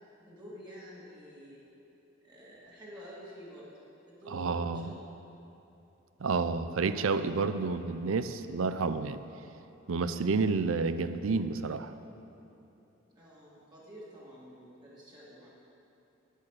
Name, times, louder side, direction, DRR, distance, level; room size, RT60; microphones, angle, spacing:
voice 1, 0.0-1.6 2.2-3.7 4.1-5.1 13.1-15.5, equal, 20° right, -8 dB, 2.2 m, -49 dB
voice 2, 4.3-4.9 6.2-9.2 9.9-11.9, right 4 dB, 75° right, 11 dB, 0.5 m, -30 dB
10.0 x 8.2 x 6.5 m, 2.9 s
head